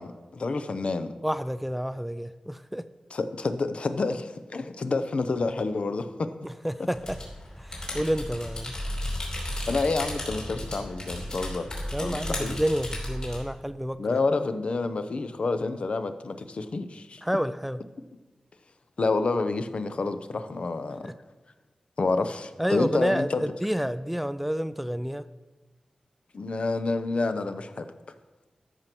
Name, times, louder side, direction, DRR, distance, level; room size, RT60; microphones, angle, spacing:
voice 1, 0.0-1.1 3.1-6.3 9.7-11.7 12.0-12.6 14.0-17.2 19.0-21.1 22.0-23.4 26.3-27.9, left 3 dB, 60° left, 10 dB, 0.7 m, -28 dB
voice 2, 1.2-2.9 6.4-7.2 7.6-8.8 11.9-14.2 17.2-17.8 21.0-21.1 22.6-25.3, equal, 5° right, 13 dB, 0.3 m, -29 dB
sound 1, 6.9-13.4, left 1 dB, 40° left, 2.9 m, -34 dB
13.0 x 4.5 x 6.0 m, 1.1 s
wide cardioid pair, 95°, 2 cm